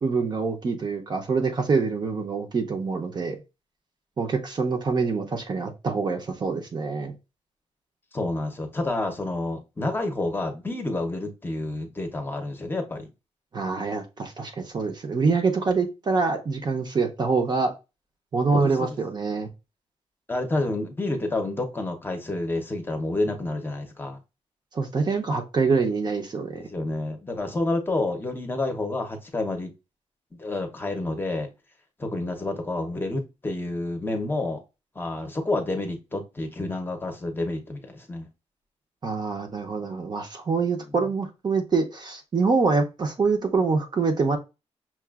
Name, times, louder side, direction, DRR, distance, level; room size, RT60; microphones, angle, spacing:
voice 1, 0.0-3.4 4.2-7.1 13.5-17.7 18.3-19.5 24.7-26.6 39.0-44.4, right 4 dB, 40° right, 0.7 m, -25 dB
voice 2, 8.1-13.1 18.5-18.9 20.3-24.2 26.5-29.7 30.4-31.5 32.0-34.6 35.0-38.3, left 2 dB, 20° left, 0.7 m, -29 dB
5.8 x 2.4 x 2.4 m
wide cardioid pair, 130°, 11 cm